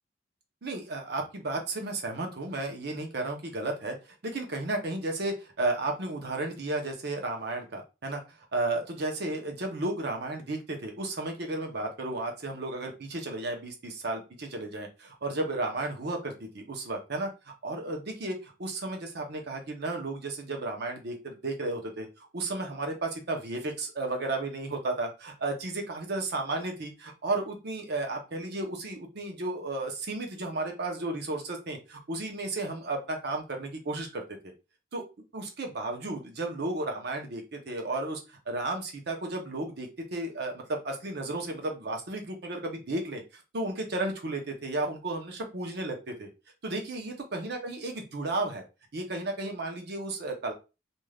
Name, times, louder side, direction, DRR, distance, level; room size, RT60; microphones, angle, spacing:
voice 1, 0.6-4.0 4.2-8.2 8.5-34.5 34.9-35.0 35.3-38.2 38.5-46.3 46.6-48.6 48.9-50.5, right 2 dB, 60° right, 3 dB, 0.7 m, -33 dB
3.3 x 2.6 x 2.3 m, 0.28 s
head